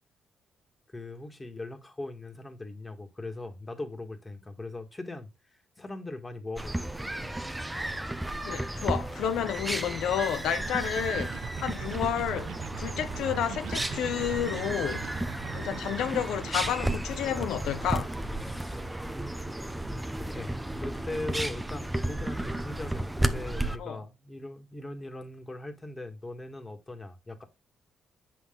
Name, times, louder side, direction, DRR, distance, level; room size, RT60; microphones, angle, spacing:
voice 1, 0.9-6.9 18.4-18.8 19.1-19.4 20.2-27.4, left 2 dB, 20° left, 1.9 m, -40 dB
sound 1, 6.6-23.8, right 1 dB, 10° right, 0.9 m, -33 dB
voice 2, 8.4-15.1 15.5-18.1 23.8-24.0, left 9 dB, 80° left, 0.9 m, -31 dB
sound 2, 10.7-16.7, right 13 dB, 85° right, 0.3 m, -41 dB
7.8 x 5.9 x 3.8 m
cardioid pair, 90°, 0 cm